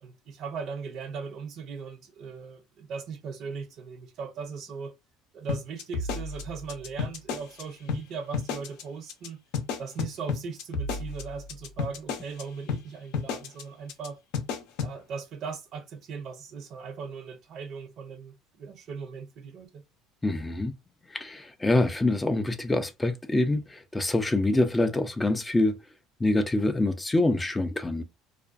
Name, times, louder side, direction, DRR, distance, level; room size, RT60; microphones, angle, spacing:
voice 1, 0.0-4.9 5.3-9.4 9.8-14.2 14.8-19.8, right 5 dB, 55° right, 0.6 m, -38 dB
sound 1, 5.5-7.6 7.9-8.0 8.3-8.8 9.1-9.3 9.5-12.4 12.7-12.8 13.1-13.6 13.9-14.1 14.3-14.9, left 5 dB, 75° left, 0.6 m, -31 dB
voice 2, 20.2-20.7 21.1-25.8 26.2-28.0, left 2 dB, 15° left, 0.3 m, -25 dB
2.4 x 2.1 x 2.4 m
cardioid pair, 115°, 0 cm